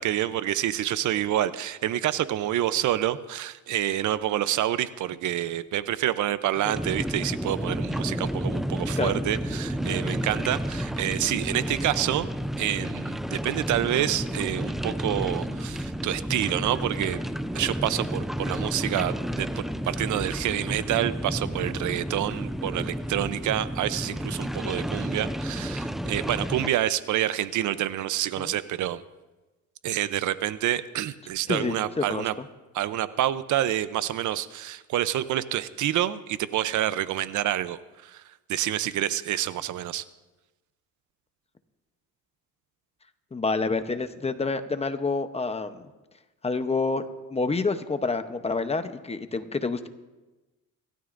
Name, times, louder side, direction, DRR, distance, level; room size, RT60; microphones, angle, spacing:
voice 1, 0.0-12.3 12.6-17.2 17.5-29.0 29.8-32.3 32.7-38.2 38.5-40.0, right 12 dB, 65° right, 14 dB, 0.7 m, -28 dB
sound 1, 6.7-26.7, equal, ahead, 0.3 m, -31 dB
voice 2, 31.5-32.4 43.3-45.9 46.4-47.0 47.3-49.9, left 4 dB, 20° left, 10 dB, 0.8 m, -28 dB
28.5 x 13.0 x 2.6 m, 1.1 s
cardioid pair, 125°, 32 cm